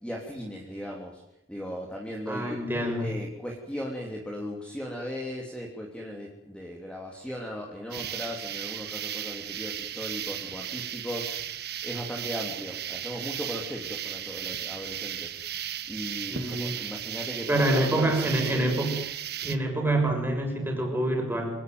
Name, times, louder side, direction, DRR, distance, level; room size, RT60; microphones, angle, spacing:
voice 1, 0.0-1.2 1.5-2.6 3.0-11.3 11.8-15.3 15.9-18.7, equal, 5° left, -1 dB, 3.1 m, -37 dB
voice 2, 2.3-3.2 16.3-16.7 17.5-19.0 19.4-21.6, right 1 dB, 10° right, 2 dB, 6.4 m, -26 dB
sound 1, 7.9-19.6, right 10 dB, 55° right, 1.5 m, -35 dB
26.0 x 18.5 x 9.6 m, 0.80 s
head